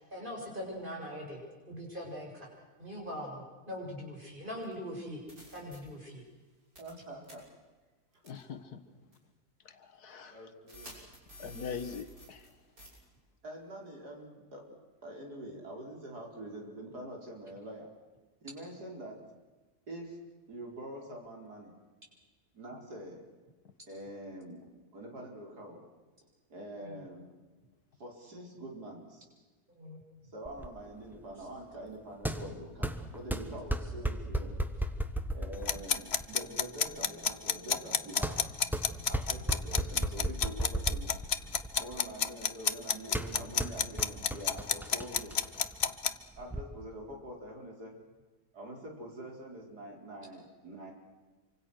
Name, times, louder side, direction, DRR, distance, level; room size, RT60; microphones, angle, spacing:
voice 1, 0.0-1.4 1.7-2.5 2.8-5.2 5.5-6.2 26.8-27.0 29.7-30.0, equal, 30° right, -1 dB, 7.6 m, -41 dB
sound 1, 4.6-4.7 5.3-5.8 6.8-7.0 7.2-7.3 8.2-8.4 9.1-9.2 10.7-12.5 12.8-12.9, equal, 65° right, 6.8 m, -50 dB
voice 2, 6.8-7.4 8.8-9.0 10.2-11.0 13.4-14.6 15.0-17.9 18.4-19.2 19.9-20.2 20.5-21.7 22.5-23.2 23.9-24.6 24.9-25.8 26.5-27.3 28.0-29.3 30.3-32.9 33.1-34.6 35.3-38.4 39.1-41.1 41.8-45.3 46.4-47.9 48.5-50.9, right 1 dB, 85° right, 1 dB, 5.2 m, -45 dB
voice 3, 8.2-8.8 9.7-10.4 11.4-12.4, left 6 dB, 75° left, 9 dB, 2.0 m, -42 dB
sound 2, 30.4-46.6, right 1 dB, ahead, 1.3 m, -37 dB
sound 3, 35.7-46.1, left 7 dB, 45° left, 1.1 m, -29 dB
27.0 x 25.5 x 6.5 m, 1.3 s
omnidirectional pair, 1.7 m